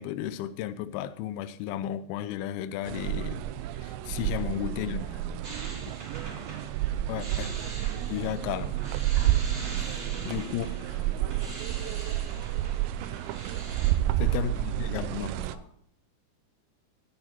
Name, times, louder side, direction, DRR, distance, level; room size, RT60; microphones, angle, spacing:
voice 1, 0.0-3.4 3.8-5.0 7.1-7.6 8.0-8.7 10.3-10.7 14.2-15.3, left 11 dB, 90° left, 2.2 m, -33 dB
sound 1, 2.9-15.6, right 13 dB, 80° right, 2.7 m, -30 dB
voice 2, 4.0-5.5 8.1-8.4 9.3-12.8 13.5-14.6 14.9-15.7, left 3 dB, 65° left, 5.3 m, -49 dB
sound 2, 5.4-13.9, right 2 dB, 25° right, 5.4 m, -43 dB
11.5 x 10.5 x 4.4 m
omnidirectional pair, 5.4 m